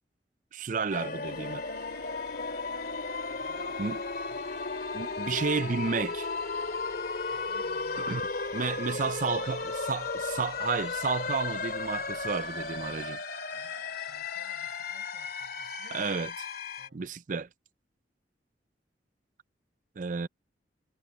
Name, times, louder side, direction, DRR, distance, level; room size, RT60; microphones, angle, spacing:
voice 1, 0.5-1.6 3.8-4.0 4.9-6.3 8.0-8.2 8.5-13.2 15.9-16.3 16.9-17.5 20.0-20.3, right 5 dB, 45° right, 0.5 m, -32 dB
sound 1, 0.9-16.9, left 4 dB, 55° left, 2.6 m, -35 dB
Bus, 1.3-13.1, left 2 dB, 25° left, 1.9 m, -52 dB
voice 2, 3.3-4.5 7.3-10.1 13.5-16.1 16.8-17.1, right 2 dB, 65° right, 4.9 m, -57 dB
head